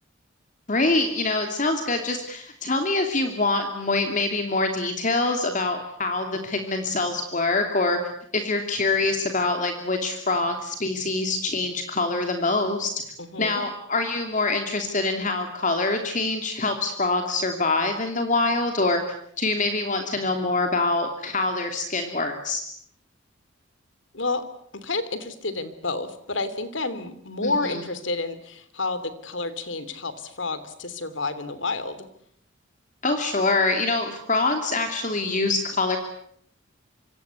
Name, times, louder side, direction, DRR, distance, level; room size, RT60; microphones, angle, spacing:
voice 1, 0.7-8.0 8.3-12.9 13.4-19.0 19.4-22.6 27.4-27.8 33.0-36.0, left 3 dB, 40° left, 5 dB, 2.9 m, -25 dB
voice 2, 13.2-13.6 24.1-24.4 24.7-32.1, left 3 dB, 70° left, 14 dB, 3.0 m, -30 dB
26.0 x 25.5 x 8.4 m, 0.68 s
head